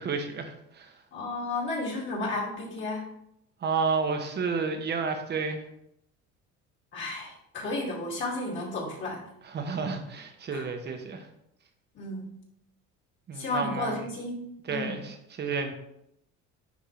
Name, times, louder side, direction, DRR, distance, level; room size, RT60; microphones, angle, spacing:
voice 1, 0.0-0.9 3.6-5.6 9.4-11.2 13.3-14.0 14.7-15.7, right 5 dB, 35° right, 5 dB, 1.1 m, -31 dB
voice 2, 1.1-3.1 6.9-9.2 10.5-10.7 11.9-12.3 13.3-15.0, left 2 dB, 40° left, -4 dB, 2.6 m, -33 dB
10.5 x 3.6 x 3.3 m, 0.77 s
cardioid pair, 120°, 30 cm